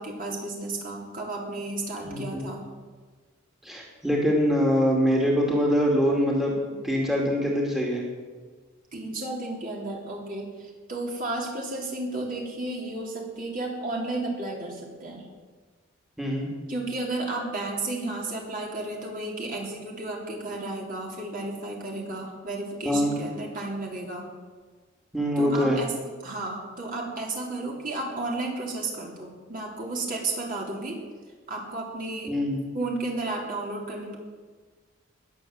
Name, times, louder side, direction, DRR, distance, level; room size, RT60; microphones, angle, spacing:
voice 1, 0.0-2.7 8.9-15.3 16.7-24.3 25.4-25.9 26.2-31.0 31.5-32.3 32.7-34.2, right 2 dB, 40° right, -1 dB, 3.4 m, -33 dB
voice 2, 2.0-2.5 3.6-6.5 6.8-8.0 16.2-16.5 22.8-23.2 25.1-25.8 32.3-32.6, equal, ahead, -2 dB, 2.5 m, -24 dB
20.0 x 7.9 x 7.6 m, 1.5 s
head